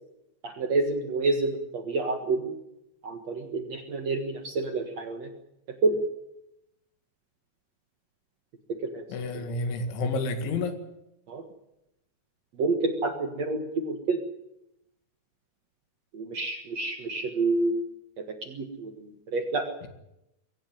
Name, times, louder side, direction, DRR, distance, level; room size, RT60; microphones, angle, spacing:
voice 1, 0.4-2.5 3.0-5.3 5.8-6.0 8.9-9.0 9.3-9.5 11.3-11.4 12.6-14.2 16.1-19.7, right 3 dB, 55° right, 5 dB, 1.9 m, -29 dB
voice 2, 9.1-10.8 19.8-19.9, left 3 dB, 90° left, 7 dB, 4.5 m, -30 dB
23.0 x 16.5 x 9.1 m, 0.86 s
omnidirectional pair, 5.2 m